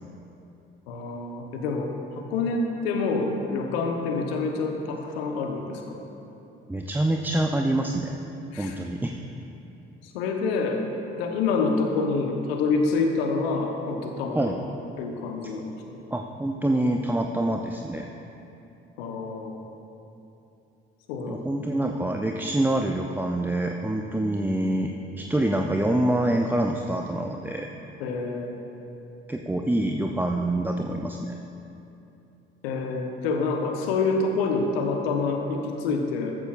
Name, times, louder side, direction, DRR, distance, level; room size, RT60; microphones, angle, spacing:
voice 1, 0.9-6.0 8.5-8.7 10.1-10.8 11.2-14.4 15.0-15.7 19.0-19.6 21.1-21.4 28.0-28.5 32.6-36.4, left 4 dB, 75° left, 3 dB, 1.2 m, -27 dB
voice 2, 6.7-8.2 8.6-9.1 14.3-14.6 16.1-18.1 21.3-27.7 29.3-31.4, right 1 dB, 5° right, 2 dB, 0.6 m, -26 dB
14.0 x 13.5 x 2.6 m, 2.9 s
figure-of-eight pair, 50°, 31 cm